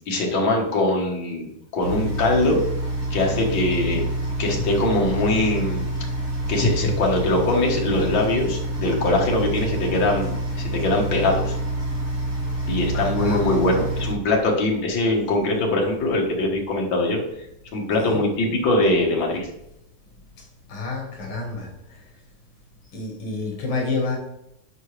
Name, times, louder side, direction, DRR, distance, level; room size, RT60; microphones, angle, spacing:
voice 1, 0.1-2.6 3.1-4.1 4.4-5.8 6.5-11.6 12.7-17.2 17.7-19.5, left 2 dB, 70° left, 0 dB, 2.1 m, -22 dB
sound 1, 1.8-14.1, right 1 dB, 35° right, 2.1 m, -27 dB
voice 2, 12.9-13.5 18.0-18.2 20.3-22.2 22.9-24.2, left 3 dB, 85° left, 1 dB, 2.4 m, -30 dB
9.1 x 4.9 x 3.2 m, 0.83 s
omnidirectional pair, 2.2 m